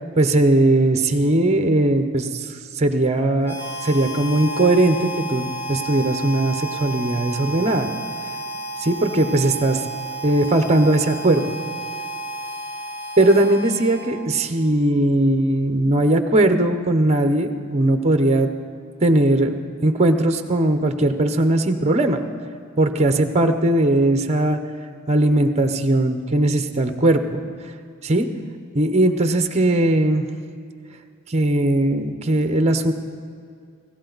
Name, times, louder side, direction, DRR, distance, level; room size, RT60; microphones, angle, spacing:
voice 1, 0.2-7.9 8.8-9.8 10.2-11.4 13.2-18.5 19.0-19.6 19.8-22.2 22.8-24.6 25.1-27.4 28.0-28.3 28.7-30.3 31.3-32.9, right 1 dB, 30° right, 7 dB, 0.8 m, -19 dB
Harmonica, 3.4-14.5, right 2 dB, 45° left, 1.4 m, -32 dB
19.0 x 16.5 x 4.0 m, 2.3 s
head